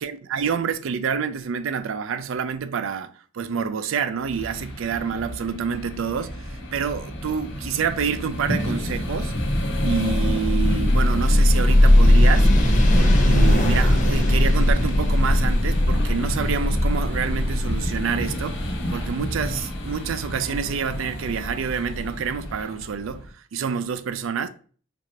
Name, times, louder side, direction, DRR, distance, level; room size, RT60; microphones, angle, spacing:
voice 1, 0.0-9.4 9.8-12.5 12.9-24.5, right 6 dB, 75° right, 0.4 m, -28 dB
sound 1, 4.2-23.3, equal, 60° left, 0.9 m, -29 dB
sound 2, 8.8-19.4, left 1 dB, 40° left, 0.6 m, -19 dB
4.6 x 2.5 x 2.7 m
head